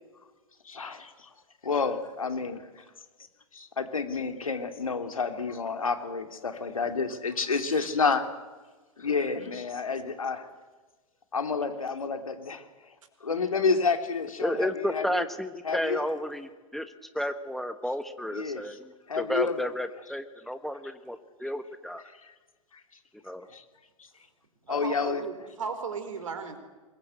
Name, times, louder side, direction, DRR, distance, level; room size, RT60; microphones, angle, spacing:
voice 1, 0.6-1.3 1.6-2.8 3.5-8.2 9.0-10.5 11.3-12.6 13.2-15.3 15.6-16.1 18.3-18.8 19.1-19.6 22.2-22.3 24.7-25.2, left 5 dB, 75° left, 7 dB, 3.0 m, -29 dB
voice 2, 14.4-22.0 23.3-23.4, equal, ahead, 10 dB, 1.3 m, -32 dB
voice 3, 24.7-26.6, right 5 dB, 65° right, 9 dB, 4.3 m, -36 dB
26.0 x 22.0 x 8.2 m, 1.3 s
figure-of-eight pair, 100°, 18 cm